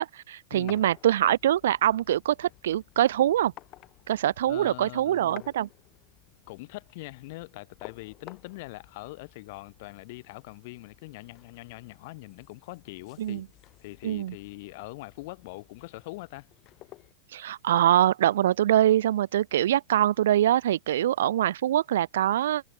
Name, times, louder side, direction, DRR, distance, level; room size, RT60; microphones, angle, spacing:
voice 1, 0.0-3.5 4.1-5.7 13.2-13.4 14.0-14.3 17.3-22.6, right 12 dB, 75° right, 0.5 m, -24 dB
sound 1, 0.6-17.1, left 17 dB, 35° left, 3.7 m, -53 dB
voice 2, 4.5-5.5 6.5-13.4 13.8-16.5, left 22 dB, 55° left, 2.6 m, -42 dB
supercardioid pair, 140°, 0 cm